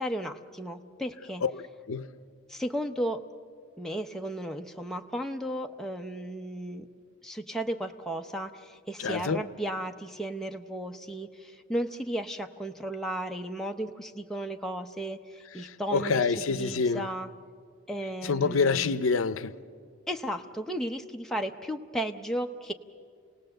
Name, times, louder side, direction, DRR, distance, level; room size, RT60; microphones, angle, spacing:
voice 1, 0.0-1.4 2.5-3.2 3.8-6.9 7.2-16.2 16.5-17.3 17.9-19.0 20.1-22.7, right 1 dB, ahead, 0.7 m, -34 dB
voice 2, 1.4-2.1 9.0-9.4 15.6-17.1 18.2-19.5, left 5 dB, 75° left, 0.6 m, -27 dB
28.5 x 18.0 x 7.8 m
head